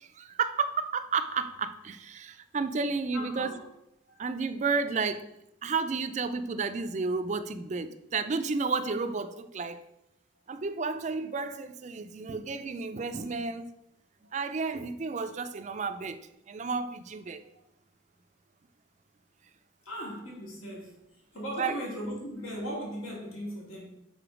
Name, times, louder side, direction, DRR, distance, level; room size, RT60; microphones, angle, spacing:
voice 1, 0.0-3.6 4.2-5.3 5.6-9.8 10.5-13.7 14.3-17.4 21.6-21.8, right 4 dB, 35° right, 10 dB, 0.3 m, -32 dB
voice 2, 3.1-3.6 4.1-4.2 19.9-21.0 21.3-23.9, equal, 85° left, -3 dB, 2.2 m, -38 dB
6.8 x 3.9 x 4.9 m, 0.85 s
head